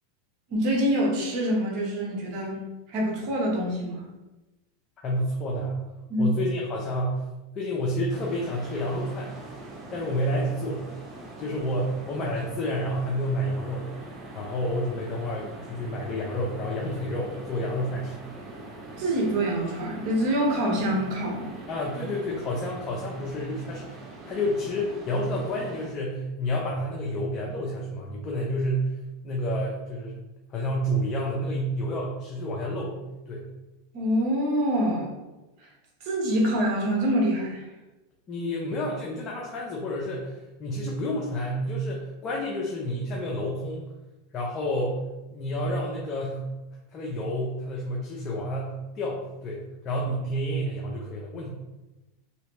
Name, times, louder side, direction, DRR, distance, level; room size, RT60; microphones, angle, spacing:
voice 1, 0.5-4.1 6.1-6.4 19.0-21.6 33.9-35.1 35.6-35.7 36.0-37.6, equal, 55° right, -2 dB, 1.2 m, -26 dB
voice 2, 5.0-5.8 6.2-7.2 7.5-9.3 9.9-10.9 11.4-13.9 14.3-18.2 21.7-28.9 29.2-30.2 30.5-33.5 38.3-43.8 44.3-45.0 45.3-46.5 46.9-51.5, equal, 35° left, -3 dB, 0.7 m, -29 dB
sound 1, 8.1-25.9, right 2 dB, 25° right, 0.8 m, -43 dB
3.1 x 3.0 x 3.1 m, 1.0 s
hypercardioid pair, 110°, 0 cm